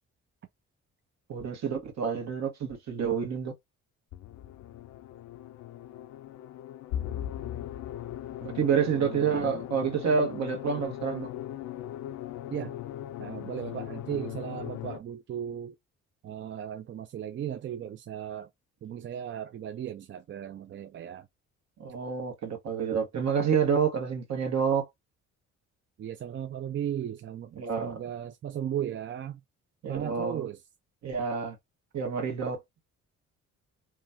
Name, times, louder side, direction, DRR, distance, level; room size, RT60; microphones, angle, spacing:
voice 1, 1.3-3.5 8.4-11.3 21.8-24.9 27.6-28.0 29.8-30.4 31.0-31.6 31.9-32.6, right 6 dB, 60° right, 1.3 m, -28 dB
sound 1, 4.1-15.0, left 12 dB, 70° left, 0.4 m, -39 dB
voice 2, 9.0-9.5 12.5-12.8 13.2-15.8 16.2-18.5 18.8-21.3 26.0-29.4 29.9-30.6, right 10 dB, 40° right, 0.4 m, -36 dB
3.0 x 2.3 x 2.5 m
cardioid pair, 90°, 30 cm